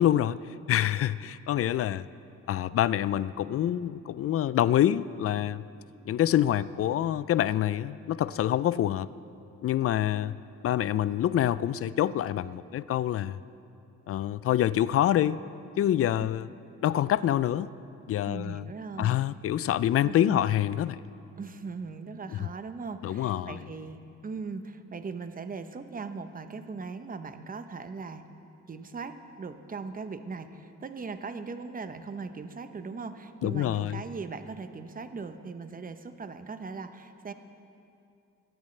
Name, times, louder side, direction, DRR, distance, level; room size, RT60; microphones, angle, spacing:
voice 1, 0.0-2.0 2.5-5.6 6.1-9.1 9.6-10.4 10.6-13.4 14.1-15.4 15.8-16.5 16.8-17.7 18.1-18.6 19.0-21.0 22.4-22.5 23.0-23.6 33.4-34.0, left 11 dB, 50° left, 17 dB, 0.4 m, -26 dB
voice 2, 18.3-19.2 20.0-20.5 21.4-28.3 28.7-37.3, right 4 dB, 30° right, 9 dB, 0.8 m, -39 dB
21.5 x 12.5 x 3.3 m, 2.6 s
cardioid pair, 90°, 30 cm